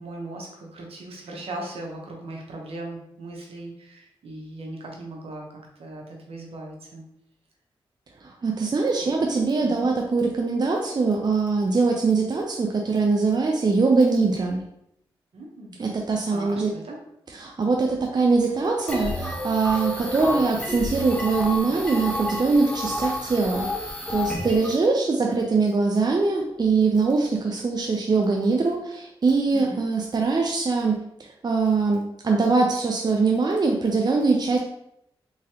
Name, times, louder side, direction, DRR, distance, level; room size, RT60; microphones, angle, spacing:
voice 1, 0.0-7.0 9.0-9.1 9.6-9.9 15.3-15.7 16.3-17.0 29.5-29.8, right 2 dB, 70° right, -1 dB, 1.0 m, -38 dB
voice 2, 8.2-14.6 15.8-16.7 17.3-31.0 31.4-34.6, right 4 dB, 45° right, 1 dB, 0.5 m, -22 dB
sound 1, 18.9-24.8, left 1 dB, 10° left, 0.9 m, -30 dB
3.5 x 3.1 x 2.9 m, 0.77 s
supercardioid pair, 45°, 10 cm